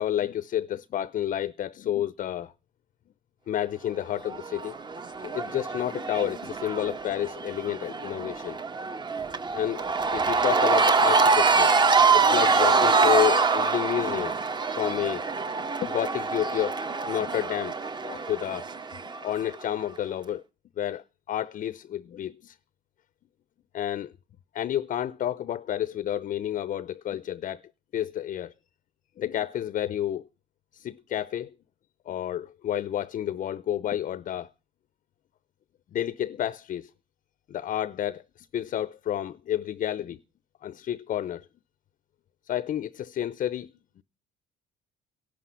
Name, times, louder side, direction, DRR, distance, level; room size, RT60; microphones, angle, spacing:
voice 1, 0.0-2.5 3.5-4.7 5.2-8.6 9.5-9.8 10.1-11.7 12.1-14.4 14.7-15.3 15.6-16.8 17.1-17.7 18.0-18.7 19.2-20.4 20.8-22.6 23.7-24.1 24.5-27.6 27.9-28.5 29.2-30.3 30.7-31.5 32.1-34.5 35.9-36.9 37.5-40.2 40.6-41.5 42.5-43.7 44.0-44.1, left 11 dB, 50° left, 0.7 m, -30 dB
Cheering / Crowd, 4.3-19.5, right 4 dB, 25° right, 1.4 m, -25 dB
17.5 x 11.5 x 5.7 m
cardioid pair, 110°, 17 cm